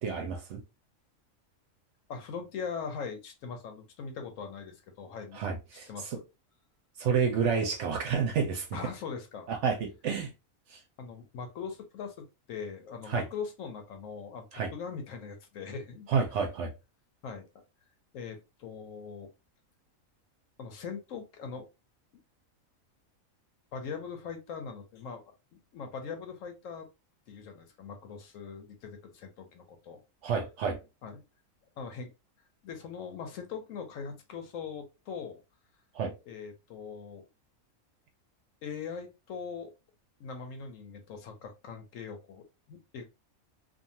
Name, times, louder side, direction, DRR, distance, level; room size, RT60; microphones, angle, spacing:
voice 1, 0.0-0.6 5.3-5.9 7.0-8.7 9.5-10.3 13.1-13.2 14.5-14.7 16.1-16.7 30.2-30.8 35.9-36.1, right 6 dB, 65° right, 0.8 m, -29 dB
voice 2, 2.1-5.4 5.9-6.3 8.7-9.5 11.0-16.1 17.2-17.5 18.1-19.3 20.6-21.7 23.7-25.2 25.7-26.9 27.3-30.0 31.0-31.2 31.8-32.1 32.6-35.4 36.3-37.2 38.6-39.7 40.2-43.0, left 6 dB, 70° left, 1.0 m, -41 dB
2.6 x 2.4 x 2.7 m
omnidirectional pair, 1.5 m